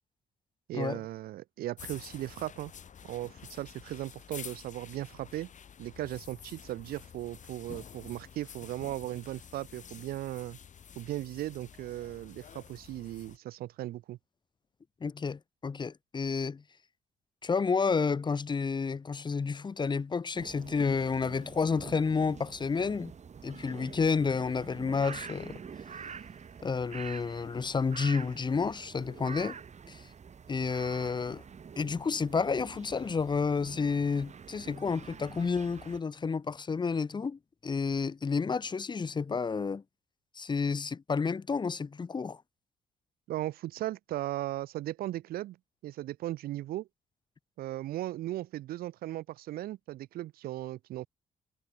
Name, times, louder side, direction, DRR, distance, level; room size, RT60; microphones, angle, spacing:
voice 1, 0.7-2.7 3.1-5.5 5.8-10.6 11.0-14.2 43.3-45.6 45.8-46.9 47.6-51.1, right 15 dB, 70° right, 2.2 m, -37 dB
sound 1, 1.8-13.4, left 7 dB, 50° left, 2.3 m, -50 dB
voice 2, 15.0-16.6 17.4-23.1 23.4-25.6 26.6-29.6 29.9-30.1 30.5-31.4 31.8-39.8 40.4-42.4, left 5 dB, 30° left, 0.7 m, -30 dB
sound 2, 20.3-36.0, right 6 dB, 45° right, 2.7 m, -47 dB
hypercardioid pair, 45°, 16 cm